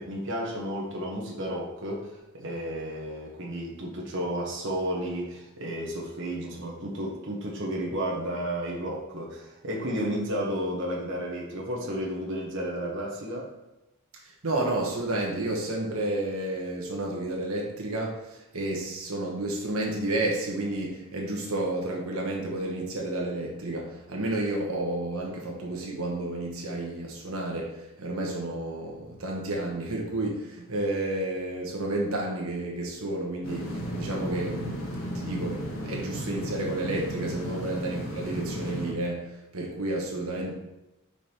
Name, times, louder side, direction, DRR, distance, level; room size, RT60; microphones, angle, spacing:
voice 1, 0.0-13.5 37.4-37.6, equal, 60° right, -3 dB, 1.3 m, -32 dB
voice 2, 14.4-40.5, right 2 dB, 85° right, -1 dB, 1.4 m, -31 dB
sound 1, 33.4-38.9, equal, 70° left, 1.5 m, -34 dB
5.2 x 5.0 x 4.5 m, 0.97 s
head